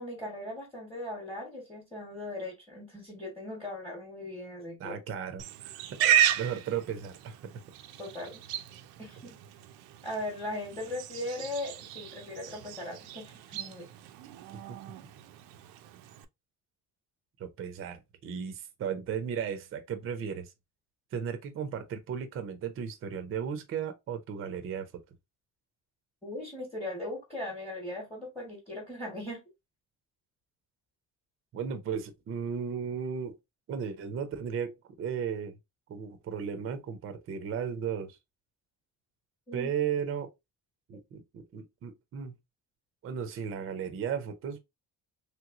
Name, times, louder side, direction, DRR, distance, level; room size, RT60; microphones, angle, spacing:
voice 1, 0.0-5.0 8.0-8.4 9.0-9.4 10.0-13.9 26.2-29.4 39.5-39.7, left 1 dB, 5° left, 1.0 m, -39 dB
voice 2, 4.8-5.8 6.4-7.4 14.7-14.8 17.4-20.5 21.1-25.0 31.5-33.4 33.7-35.6 35.9-38.2 39.5-40.3 40.9-42.4 43.0-44.6, right 7 dB, 35° right, 0.5 m, -35 dB
Livestock farm animals working animals, 5.4-16.3, right 10 dB, 85° right, 0.5 m, -34 dB
3.2 x 3.0 x 2.4 m
cardioid pair, 165°, 36 cm